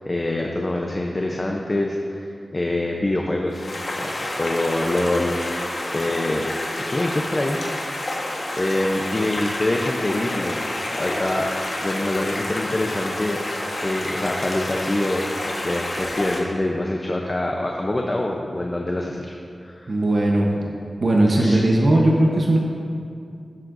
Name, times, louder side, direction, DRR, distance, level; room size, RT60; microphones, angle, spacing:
voice 1, 0.1-2.3 2.5-3.7 4.0-6.5 6.8-7.6 8.5-10.6 10.9-11.5 11.8-13.4 13.8-19.2 19.6-19.9 21.4-21.6, left 1 dB, 25° left, 0 dB, 0.6 m, -25 dB
sound 1, 3.5-16.4, left 1 dB, 55° left, 1.3 m, -29 dB
voice 2, 19.9-20.6 21.0-22.6, right 1 dB, 50° right, -1 dB, 0.9 m, -18 dB
15.5 x 7.4 x 2.6 m, 2.4 s
wide cardioid pair, 115°, 0 cm